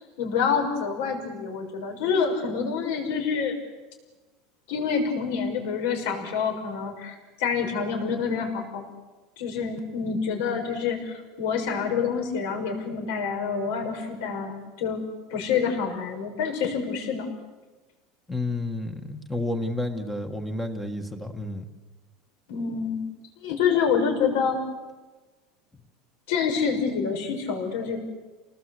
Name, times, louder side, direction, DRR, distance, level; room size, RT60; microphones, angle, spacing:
voice 1, 0.2-3.6 4.7-8.8 9.4-15.0 15.3-17.3 22.5-23.0 23.4-24.7 26.3-28.0, left 6 dB, 70° left, 4 dB, 6.2 m, -27 dB
voice 2, 18.3-21.6, left 2 dB, 5° left, 5 dB, 1.4 m, -30 dB
29.5 x 19.0 x 8.2 m, 1.2 s
cardioid pair, 170°, 0 cm